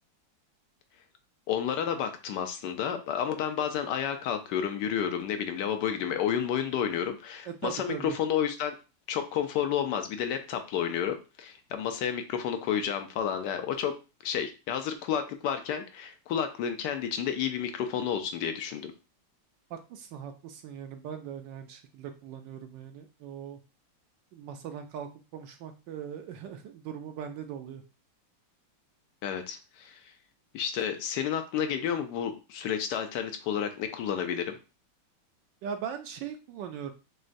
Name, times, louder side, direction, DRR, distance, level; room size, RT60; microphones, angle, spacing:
voice 1, 1.5-8.7 9.1-13.9 14.2-18.9 29.2-30.0 30.5-34.6, left 8 dB, 70° left, 7 dB, 1.1 m, -31 dB
voice 2, 7.5-8.1 19.7-23.6 24.3-27.8 35.6-36.9, right 8 dB, 75° right, 7 dB, 1.2 m, -40 dB
6.2 x 2.2 x 2.6 m, 0.31 s
omnidirectional pair, 2.1 m